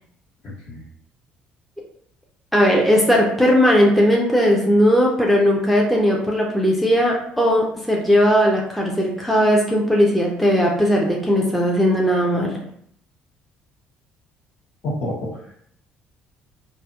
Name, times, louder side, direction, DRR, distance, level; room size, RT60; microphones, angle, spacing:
voice 1, 0.4-0.8 15.0-15.5, left 1 dB, 55° left, -6 dB, 1.3 m, -31 dB
voice 2, 2.5-12.6, equal, ahead, -2 dB, 0.5 m, -18 dB
2.6 x 2.0 x 2.3 m, 0.67 s
hypercardioid pair, 65°, 4 cm